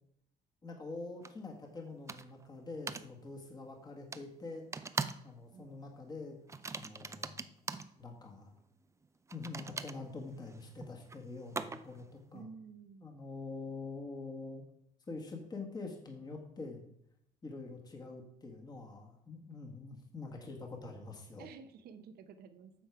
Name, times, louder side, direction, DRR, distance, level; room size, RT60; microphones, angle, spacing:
voice 1, 0.6-4.6 5.2-6.4 6.7-7.4 8.0-8.5 9.3-12.5 13.0-14.6 15.1-16.8 17.4-21.5, left 3 dB, 25° left, 1 dB, 1.6 m, -45 dB
sound 1, 1.2-1.3 2.1-2.4 2.9-3.1 4.1-4.2 4.7-5.3 5.6-5.8 6.5-7.9 9.3-12.0, right 4 dB, 15° right, 0.4 m, -41 dB
voice 2, 5.5-5.8 12.3-13.1 21.4-22.7, right 5 dB, 65° right, 10 dB, 0.9 m, -52 dB
9.2 x 6.5 x 4.7 m, 0.73 s
cardioid pair, 110°, 17 cm